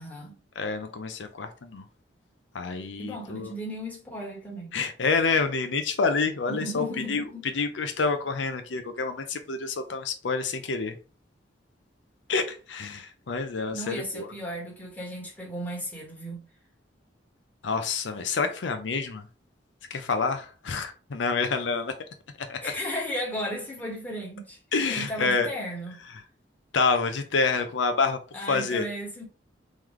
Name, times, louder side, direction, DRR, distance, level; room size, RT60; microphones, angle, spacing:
voice 1, 0.0-0.4 3.0-4.8 6.5-7.5 13.7-16.5 22.6-24.6 24.9-26.0 28.3-29.2, equal, 10° left, 1.4 m, -35 dB
voice 2, 0.6-1.8 2.5-3.5 4.7-7.2 7.5-11.0 12.3-14.3 17.6-19.2 19.9-21.9 22.5-22.6 24.7-25.5 26.7-28.2 28.5-28.8, left 4 dB, 80° left, 0.5 m, -27 dB
3.8 x 3.1 x 3.1 m
head